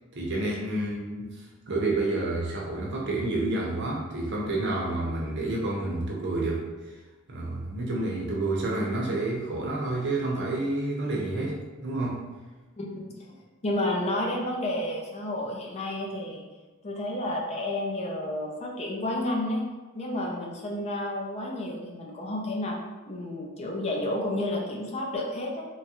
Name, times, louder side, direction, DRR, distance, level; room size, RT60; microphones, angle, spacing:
voice 1, 0.1-6.7 7.3-12.2, right 2 dB, 55° right, -3 dB, 0.7 m, -29 dB
voice 2, 12.8-13.1 13.6-16.4 16.8-19.6 19.9-22.7 23.1-25.6, left 1 dB, 30° left, -1 dB, 0.4 m, -31 dB
3.0 x 2.3 x 2.9 m, 1.2 s
head